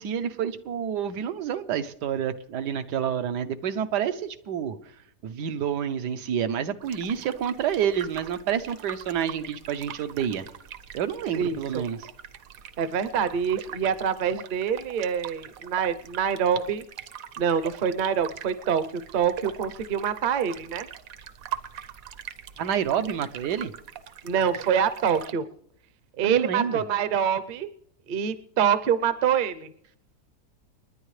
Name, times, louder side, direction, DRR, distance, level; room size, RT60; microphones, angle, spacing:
voice 1, 0.0-4.8 5.2-10.4 10.9-12.1 22.6-23.7 26.2-26.8, right 8 dB, 85° right, 9 dB, 1.4 m, -28 dB
sound 1, 6.8-25.3, right 10 dB, 65° right, 1.1 m, -42 dB
voice 2, 11.4-11.8 12.8-16.8 17.4-18.8 19.1-20.9 24.2-25.5 26.2-27.7 28.1-29.7, right 8 dB, 50° right, 12 dB, 0.6 m, -25 dB
29.5 x 10.0 x 3.2 m, 0.71 s
omnidirectional pair, 1.7 m